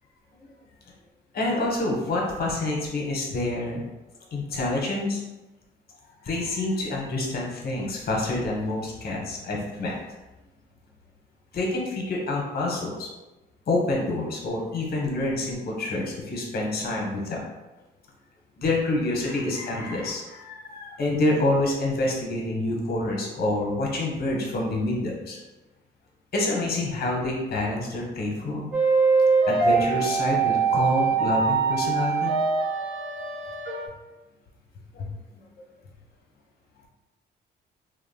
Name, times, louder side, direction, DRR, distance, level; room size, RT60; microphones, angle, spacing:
voice 1, 1.3-3.8 4.3-5.2 6.2-9.9 11.5-13.1 13.7-17.4 18.6-25.4 26.3-28.7 29.5-32.4 34.9-35.1, left 2 dB, 50° left, -1 dB, 0.8 m, -27 dB
sound 1, 28.7-33.9, right 5 dB, 50° right, 0.6 m, -23 dB
2.6 x 2.0 x 2.6 m, 1.1 s
cardioid pair, 90°, 20 cm